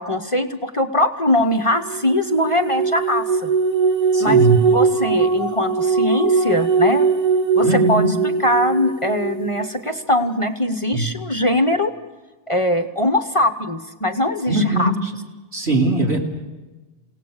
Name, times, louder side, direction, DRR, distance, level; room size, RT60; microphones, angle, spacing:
voice 1, 0.0-3.5 4.2-4.4 4.7-7.1 7.5-8.0 8.4-11.9 12.5-14.9, left 1 dB, 30° left, 8 dB, 1.0 m, -21 dB
sound 1, 1.8-9.7, right 5 dB, 35° right, 0.7 m, -20 dB
voice 2, 4.1-4.7 7.6-8.1 10.9-11.1 14.5-15.0 15.5-16.2, right 2 dB, 70° right, 1 dB, 3.4 m, -19 dB
29.0 x 18.0 x 6.5 m, 1.2 s
omnidirectional pair, 1.2 m